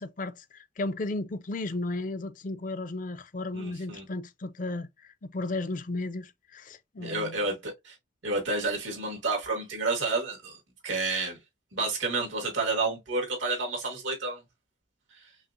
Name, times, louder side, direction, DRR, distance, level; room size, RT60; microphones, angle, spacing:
voice 1, 0.0-4.9 5.2-7.4, left 2 dB, 45° left, 0.5 m, -34 dB
voice 2, 3.5-4.0 7.0-8.0 8.2-10.6 10.8-11.4 11.7-14.4, right 3 dB, 90° right, 2.1 m, -30 dB
5.4 x 2.4 x 2.5 m
head